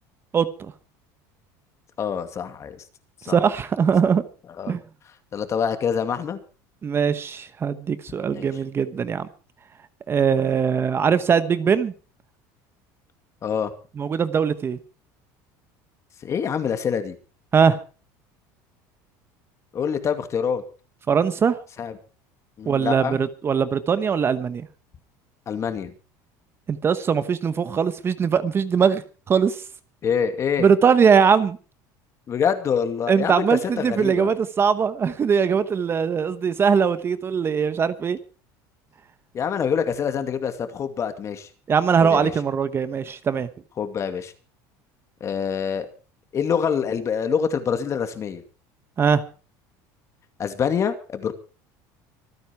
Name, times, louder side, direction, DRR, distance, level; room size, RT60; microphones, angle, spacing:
voice 1, 0.3-0.7 3.3-4.2 4.7-4.8 6.8-9.3 10.1-11.9 14.0-14.8 17.5-17.8 21.1-21.6 22.7-24.7 26.7-29.6 30.6-31.6 33.1-38.2 41.7-43.5 49.0-49.2, right 6 dB, 30° right, 13 dB, 1.0 m, -21 dB
voice 2, 2.0-2.8 3.2-3.4 4.6-4.8 5.3-6.4 8.3-8.5 10.3-10.5 13.4-13.7 16.2-17.2 19.7-20.6 21.8-21.9 22.6-23.2 25.5-25.9 30.0-30.7 32.3-33.4 33.8-34.3 39.3-41.5 42.0-42.3 43.8-44.3 45.2-45.9 46.3-48.4 50.4-51.3, left 7 dB, 35° left, 9 dB, 2.4 m, -25 dB
25.0 x 9.5 x 4.7 m, 0.37 s
supercardioid pair, 125°, 9 cm